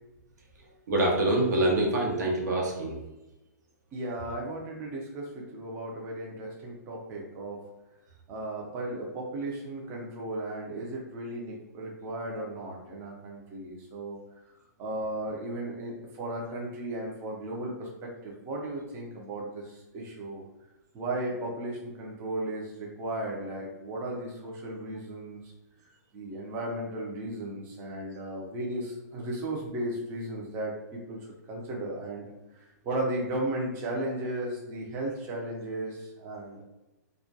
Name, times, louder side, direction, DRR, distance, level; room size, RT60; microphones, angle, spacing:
voice 1, 0.9-3.0, right 1 dB, 70° right, -1 dB, 0.8 m, -25 dB
voice 2, 3.9-7.6 8.3-14.2 14.8-20.4 20.9-25.4 25.8-36.6, right 1 dB, 25° right, -2 dB, 0.4 m, -35 dB
2.2 x 2.1 x 2.6 m, 0.98 s
hypercardioid pair, 140°, 10 cm